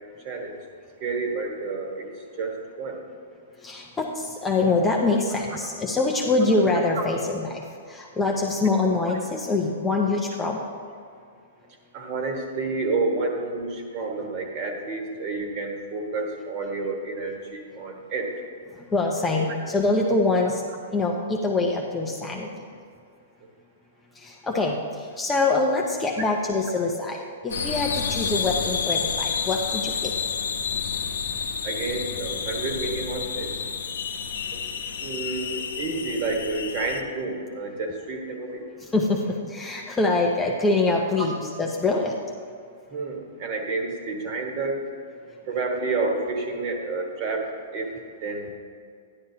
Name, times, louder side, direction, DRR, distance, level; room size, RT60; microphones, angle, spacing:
voice 1, 0.2-0.5 1.0-2.1 2.4-3.0 7.0-7.1 11.9-18.3 31.6-33.5 34.5-34.6 35.0-38.6 42.9-44.8 45.5-48.5, right 3 dB, 35° right, 2 dB, 1.4 m, -29 dB
voice 2, 3.6-10.7 18.7-20.6 20.9-22.6 24.1-30.1 38.8-42.2 45.3-45.4, left 3 dB, 10° left, -1 dB, 0.6 m, -24 dB
sound 1, 27.5-37.0, left 6 dB, 85° left, 0.8 m, -30 dB
12.5 x 10.5 x 2.8 m, 2.3 s
hypercardioid pair, 165°, 0 cm